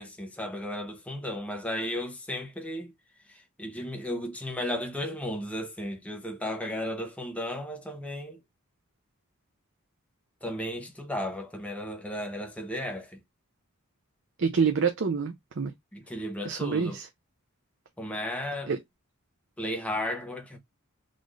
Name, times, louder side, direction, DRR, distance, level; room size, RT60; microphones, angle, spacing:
voice 1, 0.0-2.9 3.3-8.4 10.4-13.2 15.9-17.0 18.0-18.7 19.6-20.6, left 1 dB, 5° left, 0.8 m, -34 dB
voice 2, 14.4-15.7 16.4-17.1 18.7-18.8, right 5 dB, 55° right, 0.6 m, -27 dB
3.9 x 2.5 x 3.1 m
head